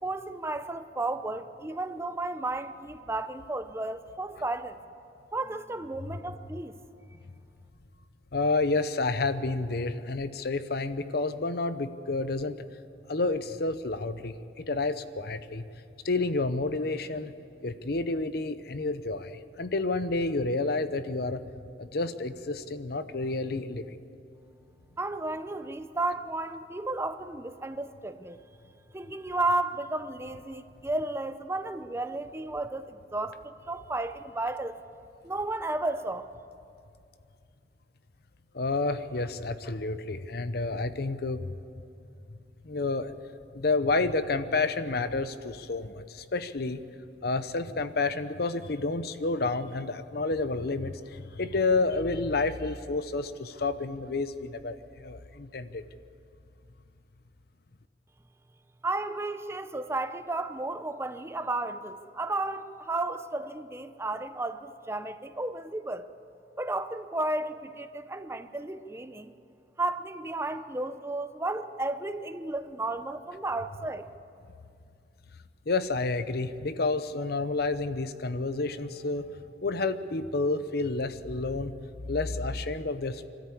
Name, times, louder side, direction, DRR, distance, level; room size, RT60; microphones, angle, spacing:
voice 1, 0.0-4.8 5.3-6.8 25.0-28.4 28.9-34.8 35.2-36.3 58.8-66.1 66.6-69.3 69.8-74.1, right 2 dB, 15° right, 0.6 m, -33 dB
voice 2, 8.3-12.6 13.1-15.6 16.0-17.3 17.6-21.4 21.8-24.0 38.5-41.5 42.3-42.4 42.6-43.1 43.5-46.8 47.2-55.8 75.7-79.3 79.6-81.7 82.1-83.3, left 3 dB, 60° left, 0.8 m, -30 dB
25.0 x 13.5 x 8.5 m
head